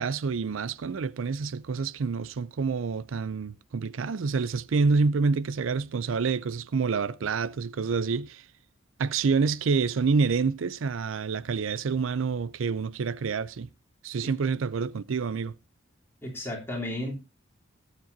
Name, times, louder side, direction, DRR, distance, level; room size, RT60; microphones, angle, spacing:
voice 1, 0.0-8.4 9.0-13.7 14.0-15.5, right 4 dB, 80° right, 0.5 m, -27 dB
voice 2, 16.2-17.2, left 1 dB, 10° left, 3.3 m, -33 dB
19.5 x 7.4 x 2.7 m
head